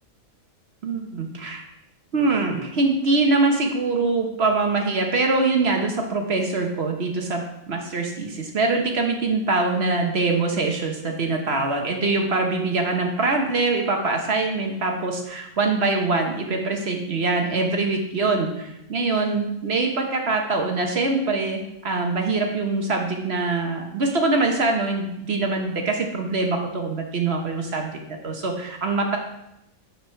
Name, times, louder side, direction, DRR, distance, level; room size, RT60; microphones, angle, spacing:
voice 1, 0.8-1.6 2.1-7.4 7.7-27.9 28.2-29.2, right 3 dB, 50° right, 2 dB, 1.1 m, -23 dB
7.3 x 4.6 x 5.7 m, 0.84 s
omnidirectional pair, 1.4 m